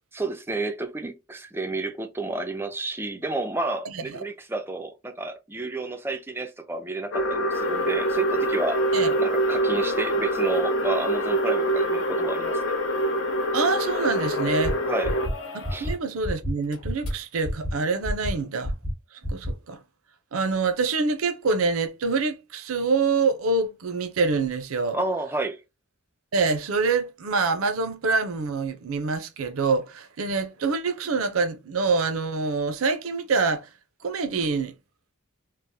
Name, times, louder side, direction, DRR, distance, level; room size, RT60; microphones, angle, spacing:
voice 1, 0.1-8.8 9.2-12.7 14.8-15.1 15.7-15.9 24.9-25.6, right 2 dB, 10° right, 0.3 m, -30 dB
voice 2, 3.8-4.2 8.9-9.1 13.5-14.8 15.5-18.8 19.1-19.8 20.3-25.0 26.3-33.7 34.0-34.8, right 4 dB, 80° right, 0.5 m, -26 dB
sound 1, 7.1-15.3, equal, 60° left, 0.6 m, -25 dB
sound 2, 7.5-16.1 16.4-16.5 16.6-17.4 18.4-18.5, left 2 dB, 90° left, 1.1 m, -44 dB
sound 3, 14.6-14.7 15.0-15.3 15.6-15.9 16.2-16.5 16.8-17.1 17.4-17.7 18.0-18.3 18.6-18.9 19.2-19.5, equal, 25° left, 0.8 m, -27 dB
3.2 x 2.0 x 2.6 m
head